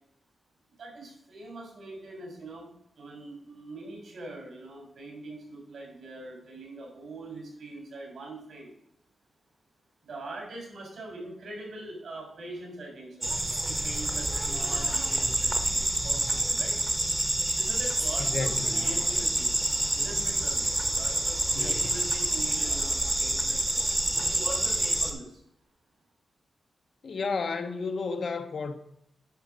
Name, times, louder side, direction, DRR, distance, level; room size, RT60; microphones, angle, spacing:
voice 1, 0.8-2.7 2.9-8.7 10.0-13.3 13.7-16.8 17.6-19.5 19.9-23.9 24.3-25.4, right 2 dB, 70° right, 3.9 m, -42 dB
sound 1, 13.2-25.1, right 1 dB, 15° right, 1.0 m, -28 dB
voice 2, 18.2-19.1 21.5-22.0 27.0-28.7, left 4 dB, 50° left, 0.8 m, -32 dB
10.5 x 5.2 x 5.0 m
wide cardioid pair, 160°, 0 cm